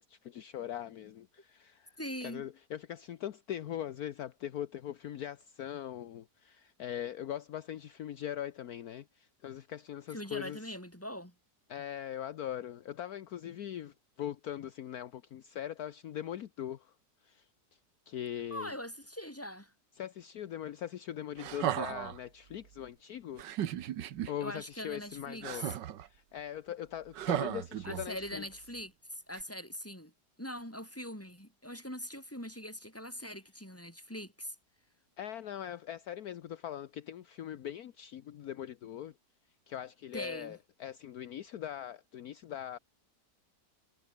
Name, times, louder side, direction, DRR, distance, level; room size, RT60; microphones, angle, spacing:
voice 1, 0.0-10.6 11.7-16.9 17.2-17.4 18.1-18.7 20.0-23.4 24.3-25.8 26.1-28.4 35.2-39.1 39.7-42.8, left 10 dB, 65° left, 1.3 m, -41 dB
voice 2, 2.0-2.5 10.1-11.3 18.5-19.7 24.4-25.7 27.9-30.1 30.4-34.6 40.1-40.6, equal, 5° left, 7.2 m, -42 dB
sound 1, 21.4-22.2 23.4-24.3 25.4-26.1 27.1-28.3 29.3-29.4, right 11 dB, 85° right, 1.7 m, -35 dB
omnidirectional pair, 1.9 m